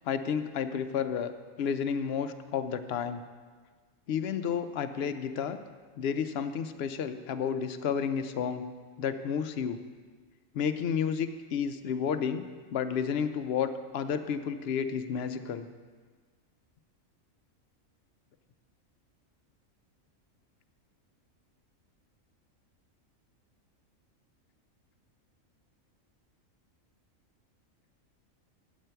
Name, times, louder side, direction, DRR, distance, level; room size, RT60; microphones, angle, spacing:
voice 1, 0.0-3.2 4.1-5.6 6.0-8.7 9.0-9.8 10.5-12.4 12.7-15.7, left 7 dB, 65° left, 10 dB, 0.7 m, -31 dB
10.0 x 8.0 x 4.4 m, 1.5 s
omnidirectional pair, 1.4 m